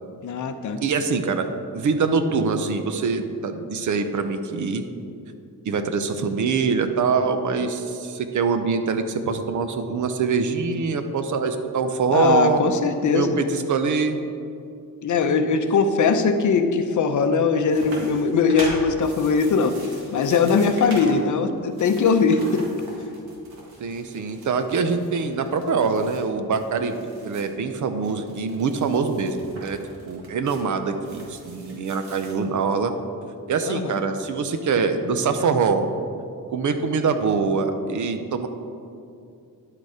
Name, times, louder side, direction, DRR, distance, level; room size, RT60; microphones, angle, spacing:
voice 1, 0.2-0.8 12.1-13.3 15.0-22.7 33.6-34.0, left 5 dB, 55° left, 8 dB, 0.7 m, -21 dB
voice 2, 0.8-1.5 1.7-4.8 5.7-12.6 13.1-14.2 23.8-27.0 27.2-29.8 30.0-32.9 33.5-35.9 36.5-38.5, right 5 dB, 55° right, 8 dB, 0.7 m, -24 dB
sound 1, 17.7-21.2 21.6-27.5 27.9-32.4, right 2 dB, 90° right, 2.1 m, -42 dB
10.5 x 6.7 x 4.9 m, 2.5 s
wide cardioid pair, 155°, 36 cm